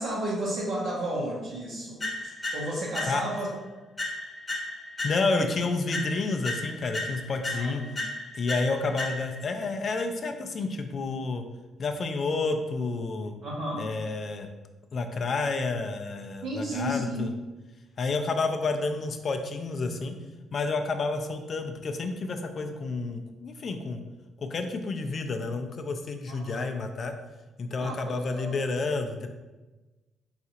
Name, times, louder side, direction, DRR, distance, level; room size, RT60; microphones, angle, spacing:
voice 1, 0.0-2.0 2.5-3.5 7.5-8.0 13.4-13.8 16.4-17.3 26.3-26.7 27.8-28.6, right 1 dB, 70° right, -6 dB, 0.7 m, -32 dB
sound 1, 2.0-3.5 4.0-5.5 5.9-9.5, left 2 dB, 30° left, 0.8 m, -35 dB
voice 2, 5.0-7.8 8.3-11.4 11.8-13.3 13.8-14.5 14.9-17.3 18.0-20.2 20.5-24.0 24.4-27.1 27.6-29.3, left 3 dB, 50° left, 6 dB, 0.4 m, -30 dB
4.1 x 2.4 x 2.8 m, 1.2 s
cardioid pair, 90°, 0 cm